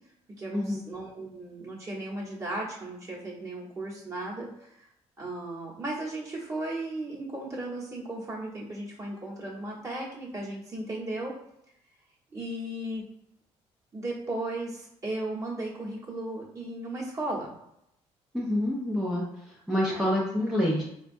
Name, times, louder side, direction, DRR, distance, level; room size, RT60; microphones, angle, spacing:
voice 1, 0.4-4.9 5.2-11.4 12.3-13.0 13.9-17.5 19.8-20.1, right 2 dB, 25° right, -5 dB, 1.0 m, -36 dB
voice 2, 18.3-19.2 19.7-20.8, left 1 dB, 5° right, -5 dB, 0.4 m, -27 dB
4.1 x 2.3 x 2.6 m, 0.78 s
cardioid pair, 165°, 12 cm